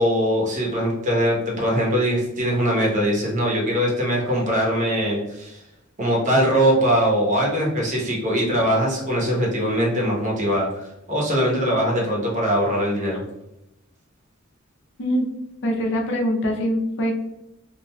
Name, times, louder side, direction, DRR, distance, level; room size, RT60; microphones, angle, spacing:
voice 1, 0.0-5.6 6.0-13.2, equal, 35° right, -3 dB, 0.9 m, -21 dB
voice 2, 15.6-17.1, equal, 60° left, 1 dB, 0.6 m, -23 dB
3.0 x 2.5 x 2.2 m, 0.87 s
head